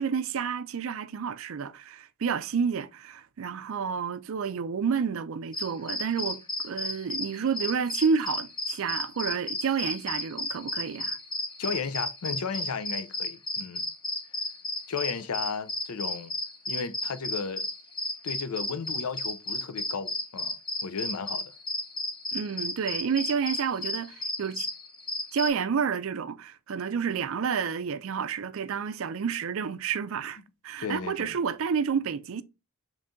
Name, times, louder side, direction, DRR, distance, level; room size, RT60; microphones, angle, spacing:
voice 1, 0.0-11.2 22.3-24.7 25.3-32.4, right 6 dB, 65° right, 0.4 m, -30 dB
sound 1, 5.5-25.5, left 1 dB, 20° left, 0.8 m, -33 dB
voice 2, 11.6-13.8 14.9-16.3 16.7-17.7 18.2-20.6 20.8-21.5 30.8-31.4, left 5 dB, 75° left, 0.5 m, -34 dB
3.8 x 3.2 x 3.6 m
head